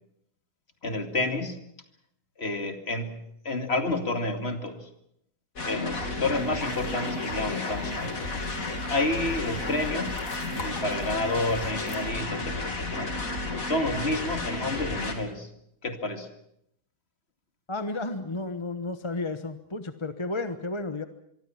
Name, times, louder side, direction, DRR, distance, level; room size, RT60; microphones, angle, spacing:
voice 1, 0.8-1.6 2.4-3.2 3.4-4.9 5.7-8.2 8.9-10.2 10.6-13.1 13.7-15.5 15.8-16.3, left 2 dB, 40° left, 6 dB, 2.5 m, -30 dB
sound 1, 5.6-15.2, left 2 dB, 55° left, 3.4 m, -32 dB
sound 2, 6.2-12.0, left 4 dB, 75° left, 2.8 m, -47 dB
voice 2, 17.7-21.0, left 2 dB, 20° left, 9 dB, 1.0 m, -32 dB
25.0 x 24.0 x 5.9 m, 0.74 s
omnidirectional pair, 1.8 m